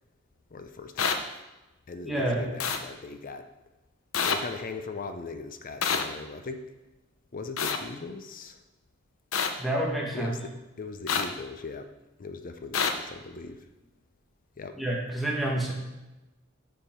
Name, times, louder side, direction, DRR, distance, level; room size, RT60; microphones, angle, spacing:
voice 1, 0.5-1.3 1.9-3.5 4.2-6.6 7.3-8.6 10.1-10.5 10.8-11.9 12.2-13.7 14.6-14.8, left 3 dB, 40° left, 8 dB, 0.5 m, -39 dB
sound 1, 1.0-1.1 2.6-2.8 4.1-4.4 5.8-6.0 7.6-7.8 9.3-9.5 11.1-11.2 12.7-12.9, left 6 dB, 85° left, 0.6 m, -26 dB
voice 2, 2.0-2.4 9.6-10.3 14.8-15.7, right 1 dB, ahead, -3 dB, 1.4 m, -28 dB
6.9 x 5.6 x 4.5 m, 1.0 s
head